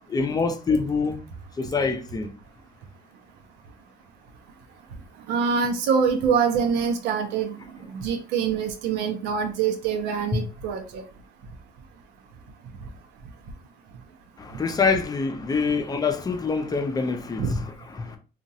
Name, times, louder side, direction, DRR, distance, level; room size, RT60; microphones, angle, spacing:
voice 1, 0.1-1.2 1.6-2.3 10.3-10.4 14.4-18.2, left 4 dB, 20° left, 0.5 m, -25 dB
voice 2, 5.3-7.6 7.9-11.0 17.4-17.5, right 6 dB, 85° right, 0.7 m, -24 dB
2.9 x 2.4 x 2.7 m
cardioid pair, 110°, 17 cm